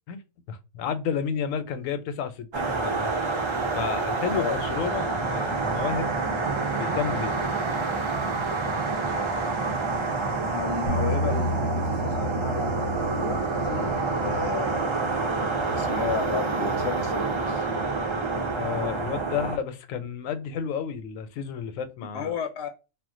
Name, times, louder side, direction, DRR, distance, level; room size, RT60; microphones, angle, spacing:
voice 1, 0.5-3.2 3.7-6.2 6.6-7.3 18.5-22.3, left 7 dB, 85° left, 1.0 m, -31 dB
sound 1, 2.5-19.6, right 3 dB, 45° right, 0.3 m, -27 dB
voice 2, 10.4-13.9 14.2-14.9 15.7-17.7 22.1-22.7, left 7 dB, 65° left, 0.7 m, -33 dB
Bass guitar, 10.9-17.1, left 1 dB, 90° right, 1.0 m, -33 dB
2.4 x 2.2 x 3.6 m
omnidirectional pair, 1.3 m